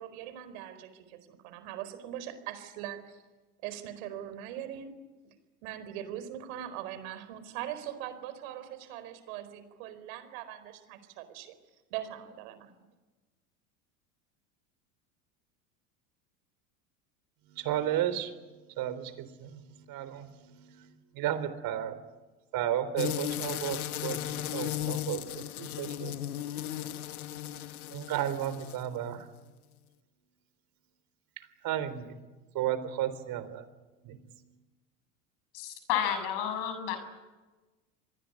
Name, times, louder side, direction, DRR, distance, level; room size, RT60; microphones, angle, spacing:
voice 1, 0.0-3.2 3.6-4.9 5.2-5.3 5.6-11.5 11.9-12.7, right 11 dB, 70° right, 12 dB, 4.5 m, -41 dB
voice 2, 17.5-18.3 18.7-22.0 22.5-26.2 27.9-29.3 31.6-32.2 32.5-33.7 34.0-34.2, right 11 dB, 50° right, 13 dB, 3.8 m, -33 dB
sound 1, 23.0-29.0, left 12 dB, 90° left, 1.4 m, -36 dB
voice 3, 35.5-37.0, left 9 dB, 65° left, 9 dB, 6.9 m, -31 dB
26.0 x 20.0 x 9.9 m, 1.2 s
hypercardioid pair, 100°, 43 cm